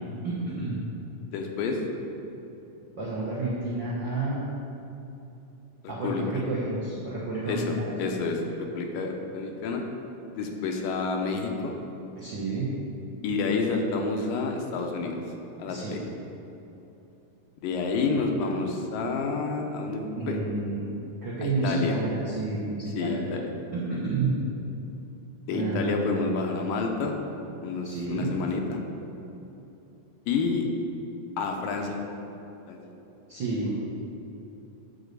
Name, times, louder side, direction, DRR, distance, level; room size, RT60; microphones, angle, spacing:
voice 1, 0.2-0.8 3.0-4.4 5.9-8.1 12.2-12.7 15.7-16.0 20.2-20.9 21.2-23.2 23.7-24.3 25.5-26.2 27.8-28.3 33.3-33.7, right 3 dB, 70° right, -7 dB, 1.0 m, -30 dB
voice 2, 1.3-1.8 5.8-6.2 7.5-9.8 10.4-11.8 13.2-15.2 15.6-16.0 17.6-20.4 21.4-22.0 23.0-23.5 25.5-27.2 27.6-28.8 30.3-30.7 31.4-32.0 32.7-32.8, left 4 dB, 85° left, 2 dB, 2.4 m, -29 dB
9.9 x 4.0 x 6.7 m, 2.9 s
omnidirectional pair, 3.9 m